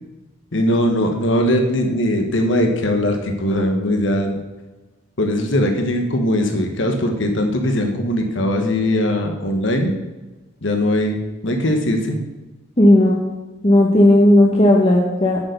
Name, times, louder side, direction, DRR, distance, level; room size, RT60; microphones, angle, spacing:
voice 1, 0.5-4.4 5.2-9.9 10.6-11.2 11.4-12.2, left 1 dB, 70° left, 4 dB, 1.3 m, -20 dB
voice 2, 12.8-13.2 13.6-15.4, left 1 dB, 30° left, -1 dB, 1.0 m, -13 dB
8.4 x 6.8 x 6.7 m, 1.1 s
head